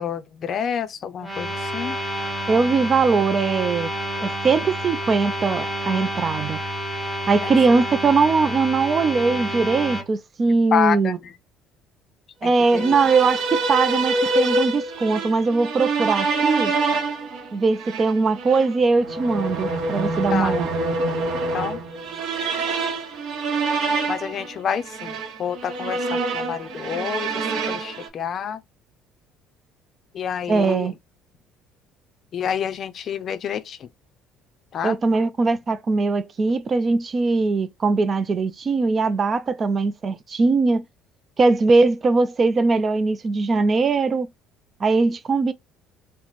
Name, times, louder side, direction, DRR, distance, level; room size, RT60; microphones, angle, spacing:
voice 1, 0.0-2.0 7.4-7.5 10.7-11.3 12.4-12.9 20.3-20.6 21.3-21.8 24.1-28.6 30.1-30.9 32.3-33.9 34.7-35.0, left 8 dB, 40° left, 0.5 m, -28 dB
sound 1, 1.2-10.0, equal, 10° right, 1.0 m, -29 dB
voice 2, 2.5-3.9 4.2-6.6 7.3-11.2 12.4-16.7 17.5-20.7 30.5-30.9 34.8-40.8 41.4-44.3 44.8-45.5, right 4 dB, 30° right, 0.3 m, -20 dB
sound 2, 12.6-28.1, right 3 dB, 70° right, 1.3 m, -26 dB
3.0 x 2.1 x 4.0 m
cardioid pair, 130°, 0 cm